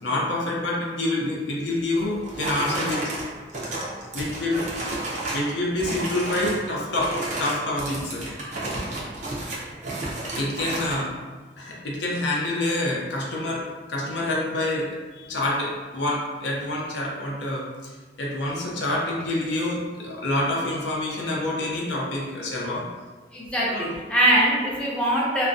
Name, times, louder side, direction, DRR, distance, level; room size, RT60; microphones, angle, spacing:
voice 1, 0.0-3.1 4.1-4.7 5.3-7.1 7.4-8.3 10.3-11.1 11.6-22.8 23.7-23.9, left 1 dB, 70° left, -3 dB, 0.5 m, -27 dB
sound 1, 2.0-5.5 5.8-6.6 6.9-11.0, right 2 dB, 40° right, 0.5 m, -32 dB
voice 2, 23.3-25.5, right 1 dB, 5° left, -6 dB, 0.4 m, -22 dB
2.5 x 2.1 x 2.5 m, 1.3 s
head